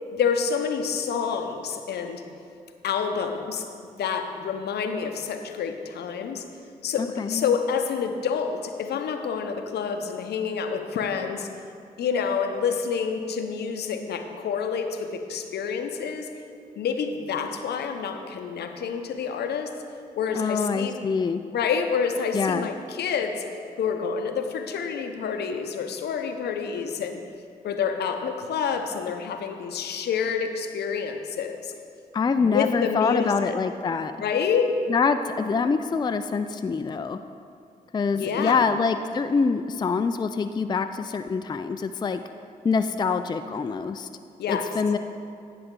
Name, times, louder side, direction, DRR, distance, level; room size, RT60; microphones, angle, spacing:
voice 1, 0.1-2.2 2.8-3.7 4.0-6.4 6.8-11.5 12.0-16.3 16.8-19.7 20.2-21.0 21.5-23.4 23.8-27.2 27.6-31.7 32.4-33.6 34.2-34.8 38.1-38.6 44.4-44.7, left 6 dB, 75° left, 6 dB, 0.7 m, -28 dB
voice 2, 7.0-7.5 20.3-21.4 22.3-22.7 32.1-34.1 34.9-37.2 37.9-42.2 42.6-44.1 44.5-45.0, left 5 dB, 25° left, 9 dB, 0.4 m, -25 dB
9.7 x 6.6 x 3.7 m, 2.4 s
supercardioid pair, 45°, 17 cm